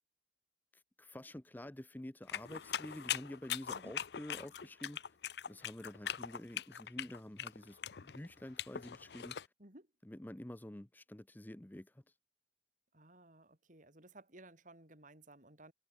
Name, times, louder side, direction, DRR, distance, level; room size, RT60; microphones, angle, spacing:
voice 1, 0.7-5.2 5.5-9.4 10.0-12.0, left 1 dB, 10° left, 0.6 m, -49 dB
sound 1, 2.3-9.5, left 9 dB, 65° left, 0.6 m, -41 dB
voice 2, 9.6-9.9 12.9-15.7, right 2 dB, 45° right, 5.1 m, -58 dB
head